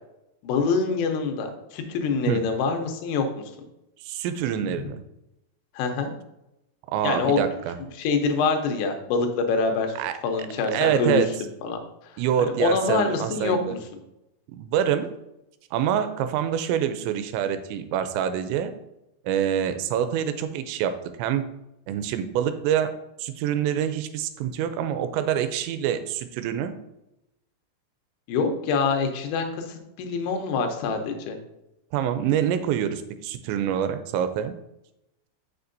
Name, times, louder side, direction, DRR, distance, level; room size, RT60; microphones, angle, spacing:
voice 1, 0.4-3.3 5.8-6.1 7.0-7.4 8.0-9.9 10.2-11.3 11.6-11.8 12.4-13.8 28.3-31.4, left 4 dB, 85° left, 5 dB, 3.2 m, -25 dB
voice 2, 4.0-5.0 6.9-7.8 10.0-10.1 10.7-11.3 12.2-13.8 14.5-15.1 15.7-18.7 19.3-20.9 21.2-21.5 21.9-26.7 31.9-34.5, right 9 dB, 85° right, 10 dB, 2.8 m, -26 dB
6.9 x 6.6 x 2.6 m, 0.89 s
omnidirectional pair, 5.2 m